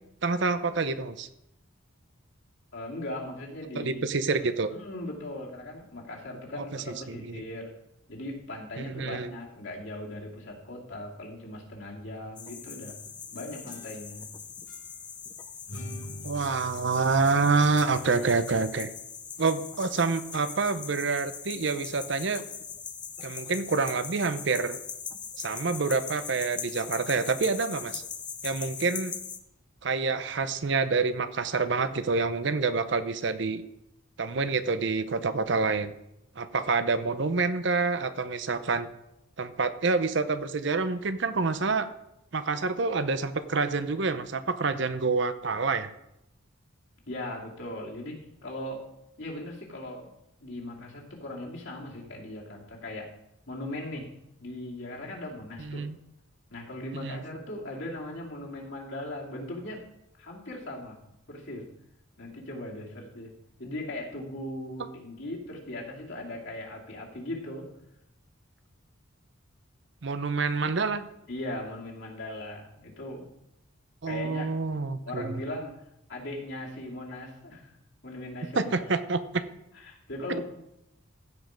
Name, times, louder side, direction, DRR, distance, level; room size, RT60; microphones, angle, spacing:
voice 1, 0.2-1.3 3.8-4.7 7.1-7.4 8.8-9.3 16.2-18.9 19.4-22.4 23.2-24.8 25.4-28.0 28.4-29.2 29.8-33.6 34.2-35.9 36.4-38.9 39.4-41.9 42.3-45.9 55.6-56.0 57.0-57.2 70.0-71.0 74.0-75.4 78.5-79.4, right 4 dB, 55° right, 11 dB, 0.6 m, -27 dB
voice 2, 2.7-4.0 4.4-7.7 8.1-13.0 13.3-14.3 47.1-48.9 49.2-50.1 50.4-53.1 53.5-54.1 54.4-55.8 56.5-59.8 60.2-61.0 61.3-61.7 62.2-67.7 71.3-73.3 74.1-74.5 75.1-75.8 76.1-77.7 78.0-78.7 79.7-80.4, left 1 dB, 60° left, -3 dB, 2.7 m, -39 dB
sound 1, 12.4-29.4, left 7 dB, 20° left, 0.6 m, -41 dB
sound 2, 13.2-14.3 14.7-14.8 15.7-18.2, equal, 90° left, 4.0 m, -44 dB
15.5 x 5.3 x 5.1 m, 0.83 s
head